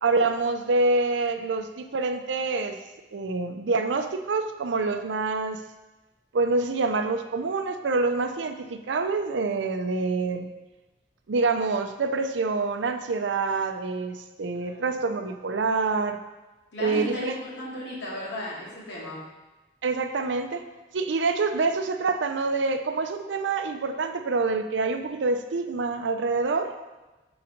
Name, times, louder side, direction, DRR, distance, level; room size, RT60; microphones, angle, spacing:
voice 1, 0.0-2.8 3.1-5.6 6.3-10.5 11.3-16.2 16.8-17.4 19.8-20.6 20.9-26.7, right 3 dB, 85° right, 8 dB, 0.5 m, -26 dB
voice 2, 16.7-19.2, left 1 dB, 70° left, -6 dB, 2.1 m, -35 dB
5.0 x 3.9 x 5.9 m, 1.1 s
head